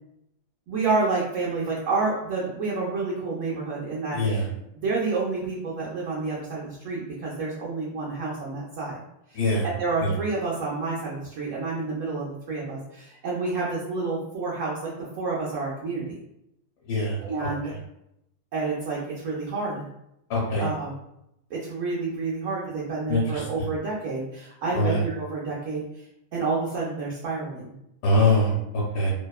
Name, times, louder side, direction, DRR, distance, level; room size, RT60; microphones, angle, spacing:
voice 1, 0.7-4.5 4.8-9.0 9.3-9.4 9.8-14.9 15.2-16.2 17.2-17.7 18.5-19.8 20.6-20.9 21.5-25.8 26.3-27.7, right 3 dB, 70° right, -5 dB, 0.8 m, -29 dB
voice 2, 4.1-4.4 9.3-9.7 10.0-10.1 16.9-17.2 20.3-20.7 23.1-23.4 24.7-25.0 28.0-29.1, left 1 dB, 75° left, -5 dB, 1.1 m, -23 dB
2.8 x 2.1 x 2.2 m, 0.81 s
omnidirectional pair, 1.7 m